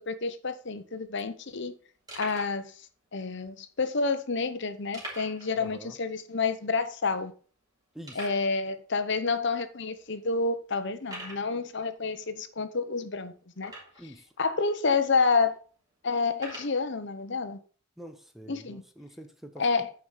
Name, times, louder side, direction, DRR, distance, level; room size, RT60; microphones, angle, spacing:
voice 1, 0.0-1.7 2.2-2.7 3.1-7.3 8.1-13.7 14.4-15.5 16.0-17.6 18.5-18.8 19.6-19.9, left 4 dB, 60° left, 0.9 m, -29 dB
sound 1, 0.6-0.7 0.9-1.1 1.6-1.7 2.1-2.6 3.4-3.5 4.9-5.5 5.8-5.9 6.3-6.4 7.0-7.1 8.0-8.5 9.3-9.4 10.0-10.1 11.0-11.5 13.6-14.1 14.9-15.0 16.3-16.8, right 1 dB, 20° right, 3.1 m, -42 dB
voice 2, 5.5-5.9 7.9-8.2 14.0-14.3 18.0-19.9, equal, ahead, 0.7 m, -46 dB
9.3 x 4.9 x 5.5 m
head